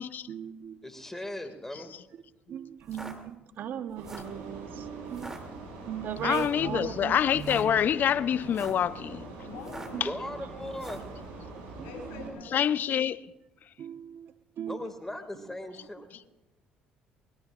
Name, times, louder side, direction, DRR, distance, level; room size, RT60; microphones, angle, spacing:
voice 1, 0.3-0.8 2.5-7.9 9.9-10.1 11.0-11.1 11.8-11.9 12.1-12.3 13.8-14.8, right 9 dB, 60° right, 1.0 m, -38 dB
voice 2, 0.8-1.9 10.0-11.1 14.7-16.1, left 1 dB, 10° left, 2.1 m, -38 dB
sound 1, 2.8-3.2 3.9-4.4 5.1-5.4 6.3-6.6 7.3-7.7 8.4-8.9 9.6-10.0 10.7-11.1, right 1 dB, 15° right, 2.6 m, -43 dB
sound 2, 3.9-12.3, right 3 dB, 85° right, 6.2 m, -44 dB
voice 3, 6.2-9.3 12.5-13.2, left 9 dB, 55° left, 0.6 m, -26 dB
voice 4, 9.4-10.2 11.8-12.7 16.1-16.3, left 4 dB, 80° left, 5.2 m, -44 dB
22.0 x 20.5 x 2.5 m
hypercardioid pair, 65°, 4 cm